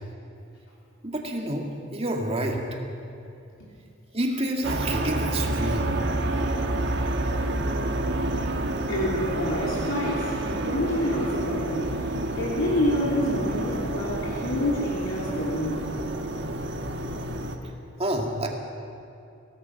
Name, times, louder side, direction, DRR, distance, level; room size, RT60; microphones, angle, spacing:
voice 1, 1.0-2.6 4.1-5.9 17.6-17.7 18.0-18.5, right 1 dB, 30° right, 1 dB, 2.3 m, -28 dB
sound 1, 4.6-17.6, right 1 dB, 60° right, 1.5 m, -29 dB
voice 2, 8.9-12.0 12.4-15.9, left 1 dB, 75° left, -4 dB, 3.0 m, -28 dB
25.0 x 17.5 x 5.9 m, 2.6 s
head